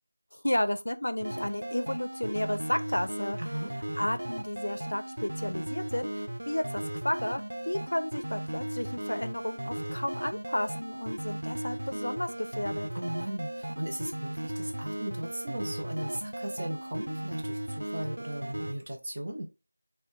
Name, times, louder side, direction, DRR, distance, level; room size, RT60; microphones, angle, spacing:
voice 1, 0.4-3.4 4.0-12.9, left 1 dB, 70° left, 0.4 m, -32 dB
sound 1, 1.2-18.7, right 1 dB, 75° right, 0.4 m, -36 dB
voice 2, 3.4-3.7 12.9-19.4, right 1 dB, 30° right, 0.6 m, -37 dB
3.4 x 2.2 x 4.3 m
figure-of-eight pair, 175°, 0 cm